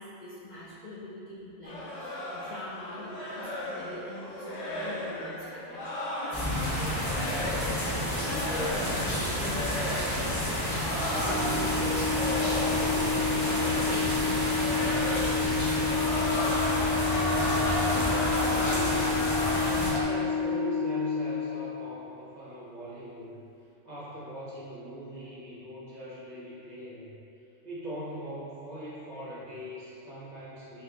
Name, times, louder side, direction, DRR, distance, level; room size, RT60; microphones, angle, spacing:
voice 1, 0.0-12.2 12.6-14.3, left 1 dB, 60° left, -6 dB, 0.5 m, -42 dB
sound 1, 1.6-7.8 8.2-9.2 9.4-10.2 10.7-13.0 13.3-14.2 14.5-15.5 15.8-20.0, left 1 dB, 85° left, 1.1 m, -34 dB
sound 2, 6.3-19.9, equal, 15° left, 0.9 m, -30 dB
Organ, 11.0-21.9, left 5 dB, ahead, 0.4 m, -30 dB
voice 2, 17.6-19.5 20.0-23.4 23.8-27.1 27.6-30.8, equal, 40° right, -9 dB, 0.9 m, -41 dB
3.4 x 3.0 x 3.5 m, 2.6 s
omnidirectional pair, 1.2 m